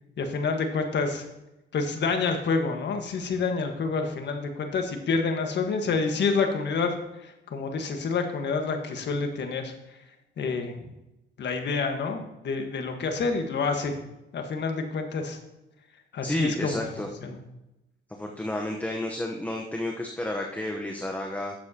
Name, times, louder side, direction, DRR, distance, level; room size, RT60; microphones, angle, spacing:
voice 1, 0.2-1.2 1.7-6.9 7.2-9.7 10.4-10.8 11.4-13.9 14.3-15.4 16.1-16.8 17.2-17.4, left 4 dB, 60° left, 5 dB, 1.5 m, -28 dB
voice 2, 16.2-17.1 18.1-21.5, left 1 dB, 10° left, 1 dB, 1.0 m, -31 dB
12.0 x 7.5 x 2.9 m, 0.92 s
cardioid pair, 90°, 20 cm